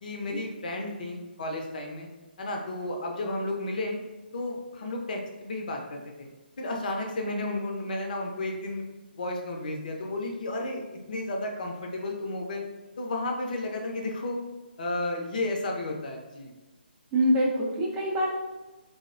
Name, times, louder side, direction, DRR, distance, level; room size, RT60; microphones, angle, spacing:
voice 1, 0.0-2.1 2.4-4.0 4.3-6.3 6.6-8.8 9.2-12.6 13.0-14.4 14.8-16.5, left 2 dB, 50° left, 1 dB, 0.5 m, -32 dB
voice 2, 17.1-18.3, equal, 15° right, -4 dB, 0.5 m, -25 dB
3.2 x 2.0 x 2.5 m, 1.2 s
figure-of-eight pair, 150°, 6 cm